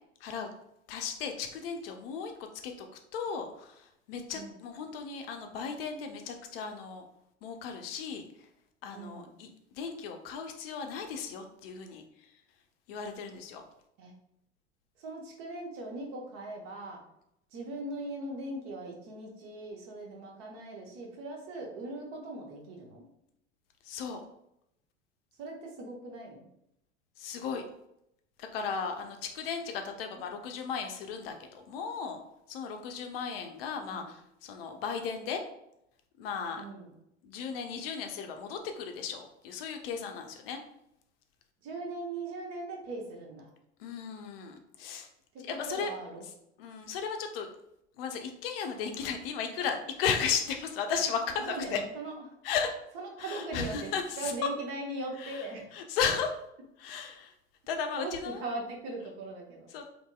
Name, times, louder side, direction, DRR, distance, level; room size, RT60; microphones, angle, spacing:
voice 1, 0.9-2.3 2.6-2.9 3.1-7.0 7.4-8.5 8.8-12.3 12.9-13.6 23.8-24.2 27.2-27.6 28.4-32.2 32.5-35.4 36.2-36.6 37.2-40.6 43.8-45.1 45.4-45.9 46.6-47.5 48.0-51.8 52.4-52.7 53.2-54.3 55.2-55.5 55.7-56.3 56.8-57.3 57.7-58.5 59.7-59.9, left 6 dB, 55° left, 5 dB, 0.5 m, -35 dB
voice 2, 8.9-9.3 14.0-14.1 15.0-17.0 17.5-23.0 25.4-26.5 33.8-34.1 36.6-36.9 41.6-43.5 45.3-46.2 51.5-52.2 52.9-55.7 58.0-59.7, right 2 dB, 50° right, 0 dB, 0.8 m, -40 dB
2.8 x 2.6 x 2.2 m, 0.79 s
figure-of-eight pair, 75°, 35 cm